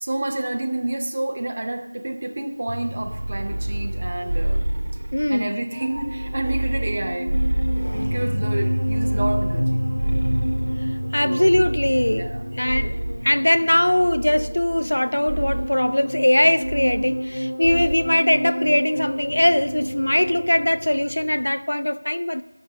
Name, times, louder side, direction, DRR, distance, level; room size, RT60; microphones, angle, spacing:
voice 1, 0.0-4.6 5.3-7.4 7.8-9.8 11.2-11.5 12.1-12.4, right 2 dB, 20° right, 0.4 m, -29 dB
sound 1, 2.7-21.5, equal, 80° left, 1.9 m, -29 dB
sound 2, 3.0-5.5 5.9-8.4 8.8-11.0 11.5-13.4 14.0-15.0 15.3-15.8 16.6-17.3 17.6-18.1, right 1 dB, 50° right, 0.8 m, -28 dB
voice 2, 5.1-5.5 11.1-13.0 13.2-22.4, left 1 dB, 60° left, 0.5 m, -21 dB
13.0 x 5.5 x 6.6 m
figure-of-eight pair, 180°, 0 cm